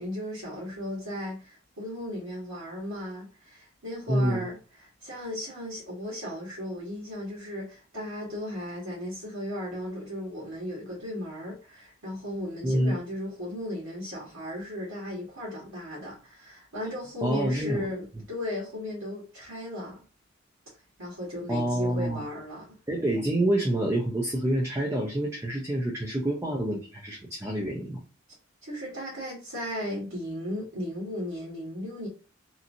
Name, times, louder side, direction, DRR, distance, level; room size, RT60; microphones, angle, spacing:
voice 1, 0.0-20.0 21.0-22.7 28.6-32.1, left 1 dB, 90° right, 1.3 m, -36 dB
voice 2, 4.1-4.4 12.6-13.0 17.2-17.9 21.5-22.2 22.9-28.0, right 1 dB, 15° right, 0.4 m, -27 dB
2.9 x 2.5 x 2.5 m
head